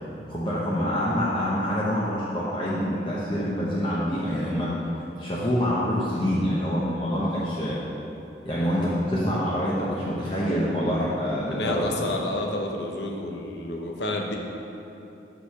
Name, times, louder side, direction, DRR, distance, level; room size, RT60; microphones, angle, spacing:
voice 1, 0.3-4.7 5.2-7.8 8.4-11.9, equal, 30° left, -8 dB, 0.9 m, -26 dB
voice 2, 11.5-14.4, left 2 dB, 80° left, 1 dB, 0.9 m, -30 dB
6.5 x 5.1 x 5.7 m, 2.9 s
head